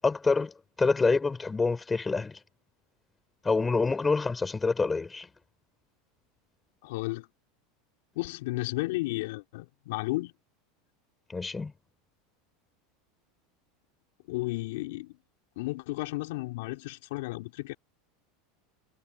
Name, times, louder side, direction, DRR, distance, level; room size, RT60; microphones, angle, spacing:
voice 1, 0.0-0.5 0.8-2.4 3.4-5.3 11.3-11.7, left 4 dB, 15° left, 7.7 m, -26 dB
voice 2, 6.8-7.3 8.2-10.3 14.3-15.2 15.6-17.7, left 21 dB, 70° left, 5.2 m, -33 dB
supercardioid pair, 125°, 0 cm